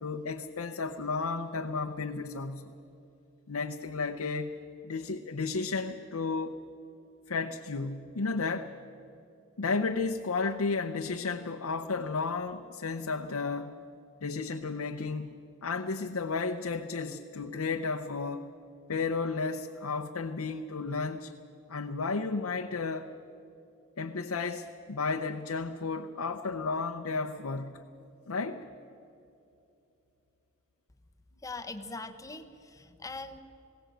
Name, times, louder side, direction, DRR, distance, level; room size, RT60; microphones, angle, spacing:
voice 1, 0.0-2.7 3.5-4.6 4.8-6.6 7.3-8.7 9.6-13.8 14.2-15.3 15.6-18.5 18.9-21.3 21.7-23.1 24.0-27.8 28.3-28.6, left 4 dB, 75° left, 4 dB, 0.8 m, -33 dB
voice 2, 31.4-33.4, left 3 dB, 15° left, 6 dB, 1.1 m, -41 dB
21.0 x 17.5 x 7.9 m, 2.8 s
head